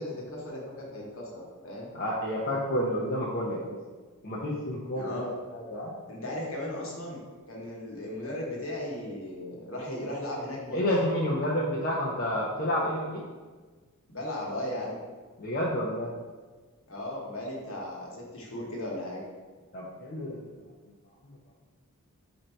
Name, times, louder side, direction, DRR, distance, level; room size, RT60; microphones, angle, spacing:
voice 1, 0.0-1.9 4.9-5.3 6.1-7.2 7.5-10.8 14.1-15.0 16.9-19.2, left 1 dB, 65° left, -2 dB, 1.1 m, -36 dB
voice 2, 1.9-3.8 4.2-5.9 10.7-13.2 15.4-16.1 19.7-20.4 21.2-21.4, equal, 40° left, -4 dB, 0.5 m, -30 dB
4.3 x 2.6 x 4.4 m, 1.4 s
head